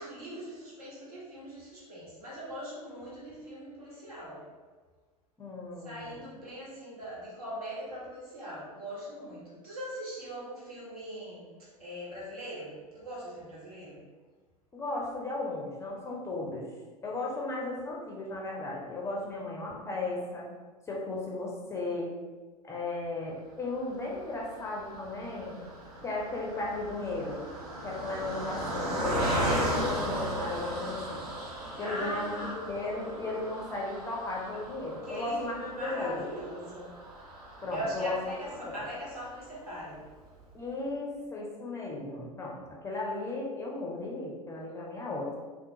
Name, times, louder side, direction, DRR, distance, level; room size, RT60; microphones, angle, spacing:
voice 1, 0.0-4.5 5.8-14.0 31.8-32.7 35.0-37.0 37.7-40.0, equal, 70° right, -7 dB, 1.3 m, -40 dB
voice 2, 5.4-6.3 14.7-16.7 17.0-20.5 20.9-22.1 22.6-25.6 26.0-27.4 27.8-31.2 31.8-36.2 37.6-38.2 38.6-38.7 40.5-45.4, left 2 dB, 15° left, -3 dB, 0.5 m, -35 dB
Car passing by, 23.9-39.4 39.9-40.0 40.2-40.4, equal, 85° right, 0.8 m, -36 dB
3.5 x 2.3 x 2.8 m, 1.4 s
figure-of-eight pair, 80°, 19 cm